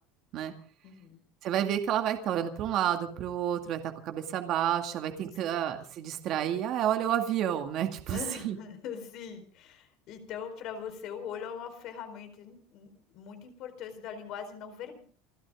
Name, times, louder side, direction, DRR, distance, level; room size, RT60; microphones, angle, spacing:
voice 1, 0.8-1.2 5.5-5.6 8.1-15.0, left 7 dB, 40° left, 8 dB, 4.4 m, -41 dB
voice 2, 1.4-8.6, right 10 dB, 35° right, 5 dB, 2.2 m, -30 dB
29.0 x 13.5 x 3.7 m, 0.42 s
cardioid pair, 180°, 0 cm